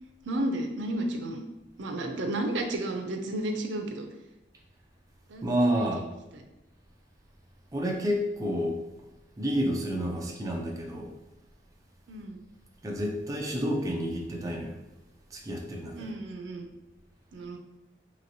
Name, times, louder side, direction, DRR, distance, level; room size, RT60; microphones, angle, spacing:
voice 1, 0.3-1.5 1.8-4.1 5.3-6.1 6.3-6.4 12.1-12.4 15.9-16.7 17.3-17.6, right 1 dB, 80° right, 4 dB, 0.5 m, -32 dB
voice 2, 5.4-6.0 7.7-8.8 9.4-11.1 12.8-14.8 15.3-16.1, equal, 20° right, -1 dB, 0.4 m, -29 dB
3.1 x 3.0 x 2.6 m, 1.0 s
head